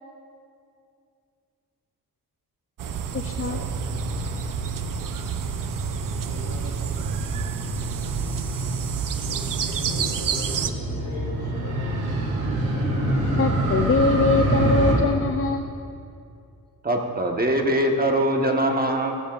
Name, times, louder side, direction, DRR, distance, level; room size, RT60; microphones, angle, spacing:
sound 1, 2.8-10.7, right 7 dB, 60° right, 0.7 m, -29 dB
voice 1, 3.1-3.6 13.4-15.7, left 3 dB, 35° left, 4 dB, 0.5 m, -22 dB
Motorcycle, 3.4-14.9, right 1 dB, 80° right, 3.0 m, -27 dB
voice 2, 6.0-7.0 9.2-10.7 11.0-11.4 11.6-12.0 17.3-17.4, left 2 dB, 75° left, -3 dB, 2.9 m, -40 dB
voice 3, 16.8-19.2, right 1 dB, 25° right, 2 dB, 1.3 m, -22 dB
15.5 x 14.5 x 2.5 m, 2.5 s
cardioid pair, 95°, 36 cm